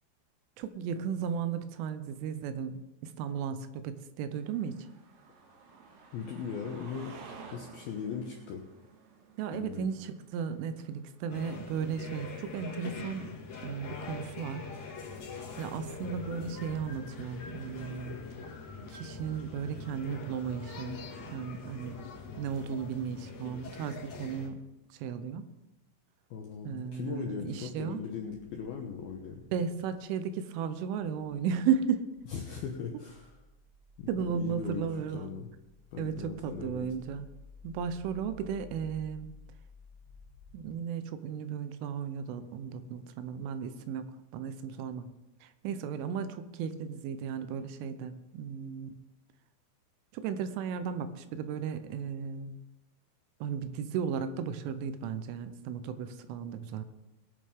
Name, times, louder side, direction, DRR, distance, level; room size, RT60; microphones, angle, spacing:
voice 1, 0.6-4.8 9.4-13.4 13.6-14.7 15.6-18.2 18.9-21.0 21.3-22.0 22.4-24.6 25.0-25.5 26.6-28.0 29.5-32.1 34.1-35.3 36.0-37.3 37.6-39.3 40.5-45.1 45.4-49.0 50.1-52.5 53.4-56.8, right 7 dB, 80° right, 10 dB, 3.2 m, -35 dB
sound 1, 4.4-15.1 15.9-16.0, right 4 dB, 65° right, 3.1 m, -54 dB
voice 2, 6.1-7.1 7.5-8.6 9.5-9.9 26.3-29.4 32.3-33.4 34.0-35.5 35.9-36.9, left 6 dB, 80° left, 0 dB, 2.2 m, -39 dB
sound 2, 11.3-24.5, left 4 dB, 50° left, 2.4 m, -43 dB
sound 3, 31.7-40.7, left 4 dB, 25° left, 2.3 m, -55 dB
22.0 x 8.8 x 3.6 m, 0.97 s
omnidirectional pair, 5.8 m